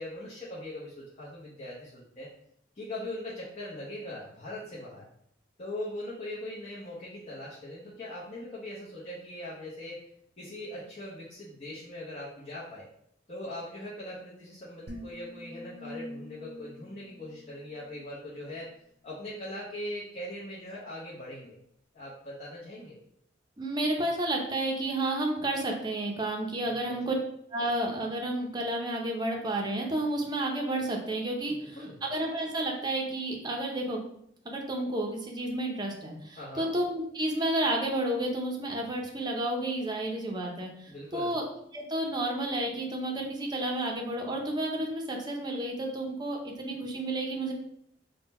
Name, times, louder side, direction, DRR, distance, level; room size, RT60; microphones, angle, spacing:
voice 1, 0.0-2.3 2.7-5.1 5.6-10.0 10.4-12.9 13.3-18.7 19.0-21.6 21.9-23.0 26.6-27.2 31.4-32.0 36.4-36.7 40.9-41.3, left 1 dB, 40° left, -7 dB, 0.8 m, -41 dB
sound 1, 14.9-18.2, left 1 dB, 60° right, 0.7 m, -46 dB
voice 2, 23.6-27.1 27.5-34.0 34.4-41.5 41.7-47.5, right 1 dB, 25° right, 1 dB, 0.6 m, -31 dB
3.7 x 2.2 x 4.1 m, 0.71 s
head